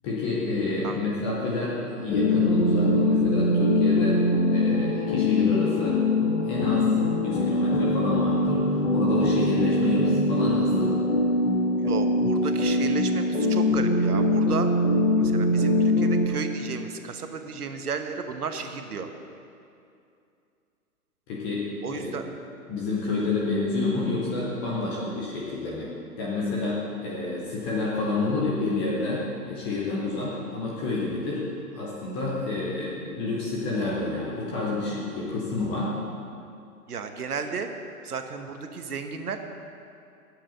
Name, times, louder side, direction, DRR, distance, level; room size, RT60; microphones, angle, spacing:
voice 1, 0.0-4.2 4.5-6.9 7.2-11.0 21.3-22.3 22.7-25.9 26.2-31.5 31.7-35.9, left 3 dB, 10° left, -5 dB, 0.4 m, -29 dB
sound 1, 2.1-16.3, left 1 dB, 50° left, 1.6 m, -23 dB
voice 2, 11.8-14.7 15.2-19.1 21.8-22.3 36.9-37.7 38.0-39.4, right 5 dB, 75° right, 6 dB, 1.2 m, -33 dB
8.7 x 7.8 x 7.9 m, 2.5 s
figure-of-eight pair, 125°, 46 cm